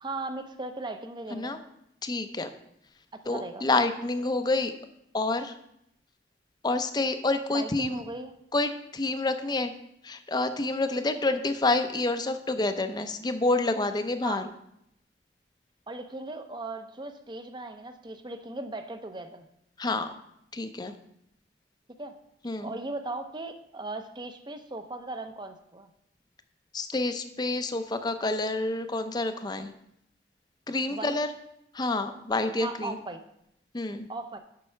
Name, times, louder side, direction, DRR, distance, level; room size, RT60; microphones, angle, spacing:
voice 1, 0.0-1.6 3.3-3.6 7.5-8.3 14.2-14.4 15.9-19.5 22.0-22.2 22.6-25.9 30.9-31.1 32.6-33.2 34.1-34.4, right 2 dB, 25° right, 8 dB, 0.6 m, -38 dB
voice 2, 2.0-2.5 3.3-4.7 5.1-5.5 6.6-8.0 8.5-9.7 10.0-14.4 19.8-20.1 20.5-20.9 22.4-22.8 26.7-29.7 30.7-31.3 31.7-33.0 33.7-34.1, left 2 dB, 20° left, 9 dB, 0.5 m, -28 dB
7.5 x 5.4 x 5.6 m, 0.78 s
head